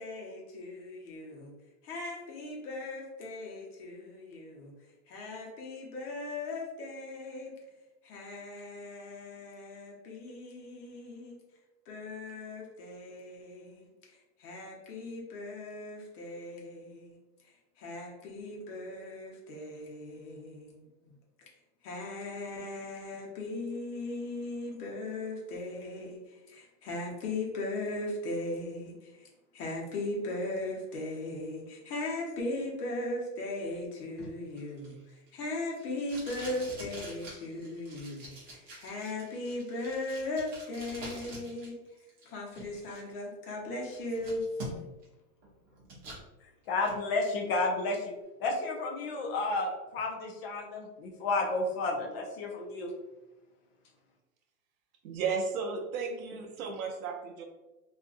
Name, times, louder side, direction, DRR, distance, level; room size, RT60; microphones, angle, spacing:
voice 1, 0.0-1.5 1.8-4.7 5.1-7.5 8.0-11.4 11.9-17.2 17.4-21.2 21.8-29.3 29.5-41.8 42.2-44.5, left 2 dB, 70° left, -1 dB, 1.0 m, -38 dB
Packing tape duct tape, 34.2-41.7 42.0-43.0 43.5-43.6 43.9-45.1 45.4-46.2 46.6-47.0, right 1 dB, 20° right, 0.6 m, -46 dB
voice 2, 46.7-48.1 48.4-52.9, left 3 dB, 40° left, 0 dB, 0.4 m, -31 dB
voice 3, 55.0-57.4, right 5 dB, 60° right, 3 dB, 0.6 m, -34 dB
2.7 x 2.5 x 2.4 m, 1.1 s
supercardioid pair, 145°, 47 cm